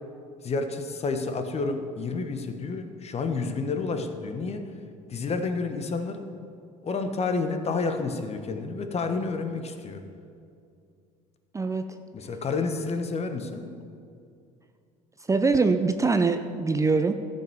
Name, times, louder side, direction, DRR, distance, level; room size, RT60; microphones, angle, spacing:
voice 1, 0.4-4.6 5.1-6.2 6.8-10.0 12.1-13.6, left 4 dB, 35° left, 7 dB, 1.2 m, -30 dB
voice 2, 11.5-12.0 15.3-17.1, right 4 dB, 15° right, 8 dB, 0.6 m, -23 dB
13.5 x 5.5 x 7.1 m, 2.4 s
hypercardioid pair, 70°, 18 cm